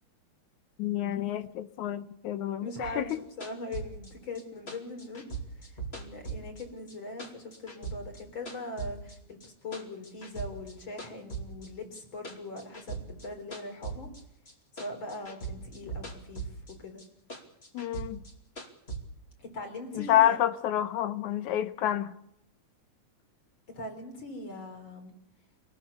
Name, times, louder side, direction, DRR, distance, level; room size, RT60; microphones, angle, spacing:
voice 1, 0.8-3.1 17.7-18.2 19.9-22.1, left 11 dB, 80° left, 2.4 m, -28 dB
voice 2, 2.6-3.1 3.4-5.2 5.5-14.1 14.7-17.0 19.4-20.4 23.7-25.1, left 2 dB, 40° left, 4.8 m, -41 dB
sound 1, 2.8-6.9 7.2-9.2 9.4-10.7 11.0-14.5 14.8-16.7 17.0-19.0, right 4 dB, 20° left, 2.7 m, -40 dB
24.5 x 19.0 x 6.9 m
omnidirectional pair, 3.4 m